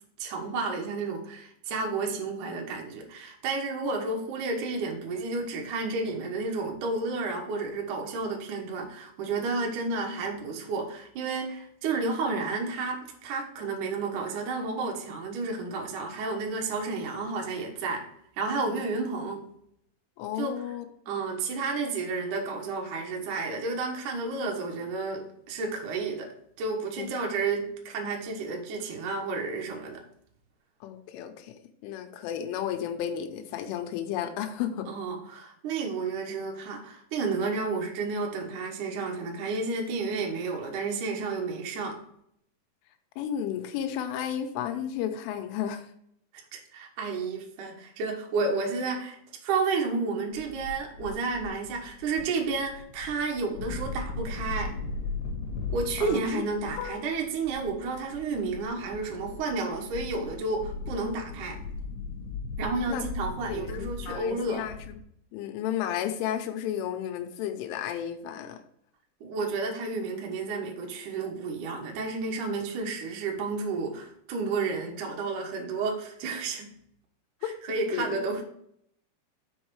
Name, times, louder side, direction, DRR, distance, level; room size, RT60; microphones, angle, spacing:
voice 1, 0.2-18.1 18.4-19.4 20.4-20.6 21.1-30.0 34.9-42.0 46.5-49.2 49.4-54.7 55.7-61.6 62.6-64.7 69.2-76.7 77.4-78.4, right 3 dB, 80° right, 1 dB, 1.8 m, -31 dB
voice 2, 20.2-20.9 27.0-27.1 30.8-31.5 31.8-34.9 43.2-45.9 56.0-56.4 56.8-56.9 62.9-63.0 63.4-65.0 65.3-68.6 77.4-77.5 77.9-78.2, left 10 dB, 85° left, 7 dB, 3.2 m, -33 dB
sound 1, 50.3-65.0, left 3 dB, 65° left, 2.3 m, -38 dB
6.3 x 5.7 x 4.7 m, 0.70 s
omnidirectional pair, 5.7 m